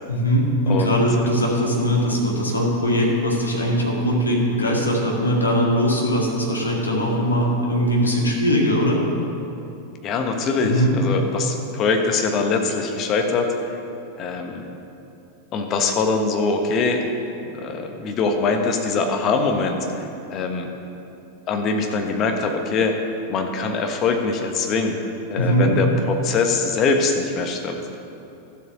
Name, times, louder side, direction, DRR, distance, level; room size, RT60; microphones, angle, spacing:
voice 1, 0.1-9.0 10.6-10.9 25.3-25.7, equal, 80° left, -2 dB, 2.1 m, -20 dB
voice 2, 10.0-13.8 14.2-14.6 15.5-17.1 17.5-20.0 20.3-20.7 21.5-23.0 23.3-25.0 25.3-25.9 26.2-27.8, left 4 dB, 35° left, 4 dB, 1.3 m, -23 dB
12.5 x 7.8 x 6.2 m, 2.9 s
figure-of-eight pair, 90°, 0 cm